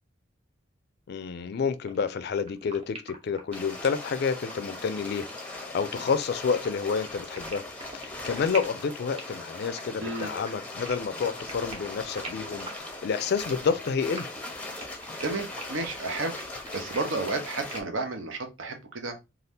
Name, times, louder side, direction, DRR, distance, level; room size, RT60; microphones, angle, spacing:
voice 1, 1.1-7.6 7.9-12.7 13.0-14.3, left 5 dB, 55° left, 0.3 m, -29 dB
sound 1, 1.9-2.0 2.2-17.9, right 2 dB, 30° right, 0.8 m, -43 dB
sound 2, 3.5-17.8, left 2 dB, 5° left, 0.6 m, -39 dB
voice 2, 10.0-10.3 15.2-16.5 16.7-19.2, right 3 dB, 85° right, 0.7 m, -32 dB
2.6 x 2.4 x 3.4 m
head